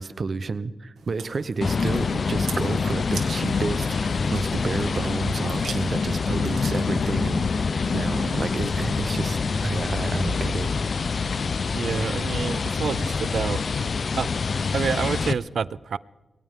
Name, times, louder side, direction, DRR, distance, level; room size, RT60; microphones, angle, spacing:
voice 1, 0.0-10.7, right 4 dB, 55° right, 15 dB, 0.9 m, -30 dB
Chewing mastication, 1.0-9.8, right 6 dB, 90° right, 1.9 m, -44 dB
sound 1, 1.6-15.3, left 4 dB, 60° left, 0.7 m, -26 dB
voice 2, 11.7-13.6 14.2-14.3 14.7-16.0, right 6 dB, 75° right, 20 dB, 0.4 m, -28 dB
22.0 x 17.5 x 3.7 m, 1.1 s
cardioid pair, 70°, 0 cm